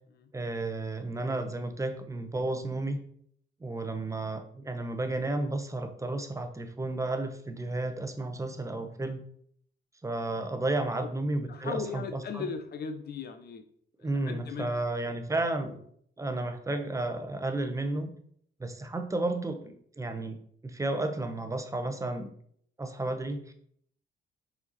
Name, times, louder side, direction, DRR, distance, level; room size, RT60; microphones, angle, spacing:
voice 1, 0.3-3.0 3.6-9.2 10.0-12.5 14.0-15.8 16.2-18.1 18.6-20.4 20.6-22.3 22.8-23.5, right 2 dB, 15° right, 7 dB, 0.9 m, -32 dB
voice 2, 11.5-13.6 14.0-15.2, left 6 dB, 55° left, 7 dB, 0.8 m, -38 dB
5.3 x 4.4 x 4.1 m, 0.63 s
cardioid pair, 90°, 20 cm